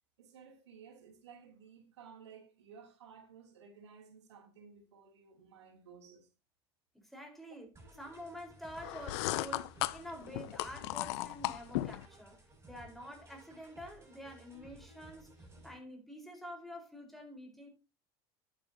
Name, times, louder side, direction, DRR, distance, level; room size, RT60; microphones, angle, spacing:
voice 1, 0.2-6.3, right 6 dB, 90° right, 3.0 m, -56 dB
voice 2, 6.9-12.4 12.7-17.7, equal, ahead, 4.3 m, -48 dB
sound 1, 7.7-15.8, right 1 dB, 20° right, 6.7 m, -57 dB
sound 2, 8.8-12.1, left 17 dB, 75° left, 0.6 m, -36 dB
11.0 x 9.2 x 2.8 m
hypercardioid pair, 90°, 14 cm